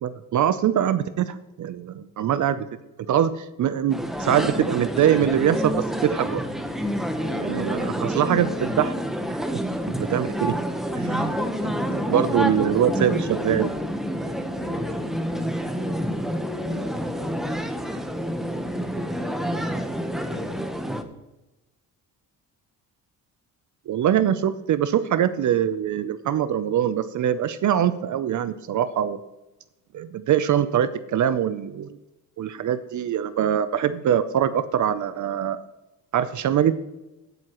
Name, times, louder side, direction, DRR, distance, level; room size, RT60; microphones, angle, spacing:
voice 1, 0.0-2.7 3.1-6.4 7.4-8.9 10.0-10.5 10.9-11.3 12.1-13.7 23.9-29.2 29.9-31.9 32.4-35.6 36.1-36.7, right 10 dB, 55° right, 13 dB, 0.6 m, -23 dB
sound 1, 3.9-21.0, equal, ahead, 1.0 m, -28 dB
voice 2, 7.1-8.2 11.1-13.7 14.2-16.3 16.7-18.0 18.5-20.9, left 3 dB, 30° left, -2 dB, 3.7 m, -40 dB
16.5 x 7.8 x 3.0 m, 1.0 s
cardioid pair, 110°, 36 cm